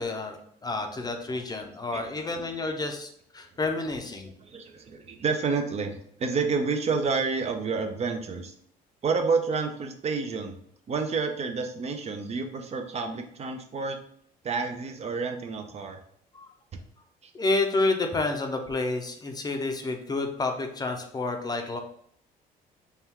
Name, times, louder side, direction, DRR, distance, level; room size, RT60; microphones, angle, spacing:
voice 1, 0.0-4.3 16.3-16.5 17.3-21.8, left 2 dB, 25° left, 4 dB, 0.6 m, -29 dB
voice 2, 4.4-8.5 9.0-10.6 10.9-14.0 14.4-16.0 17.2-17.3, right 4 dB, 40° right, 5 dB, 0.5 m, -29 dB
4.4 x 2.2 x 3.6 m, 0.66 s
cardioid pair, 110°, 17 cm